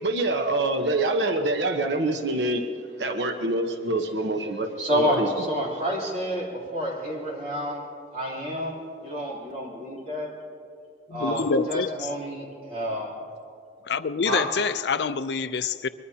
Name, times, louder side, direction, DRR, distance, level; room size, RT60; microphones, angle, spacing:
voice 1, 0.0-2.6 3.0-5.3, right 2 dB, 90° right, 1.0 m, -25 dB
voice 2, 4.8-7.8 8.1-10.3 11.1-13.1 14.2-14.4, equal, 40° right, 3.4 m, -29 dB
voice 3, 11.1-12.1 13.9-15.9, left 5 dB, 75° left, 0.5 m, -26 dB
23.0 x 21.5 x 2.8 m
head